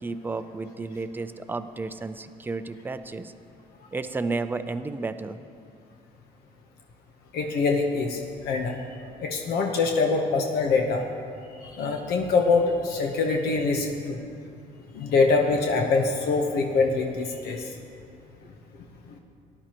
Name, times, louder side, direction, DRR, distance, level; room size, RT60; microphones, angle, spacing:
voice 1, 0.0-3.3 3.9-5.4, right 3 dB, 15° right, 10 dB, 0.4 m, -32 dB
voice 2, 7.3-8.2 8.4-8.8 9.2-11.0 11.6-14.2 14.9-17.8 19.1-19.2, left 4 dB, 85° left, 2 dB, 1.0 m, -24 dB
18.0 x 11.0 x 3.0 m, 2.5 s
cardioid pair, 145°, 16 cm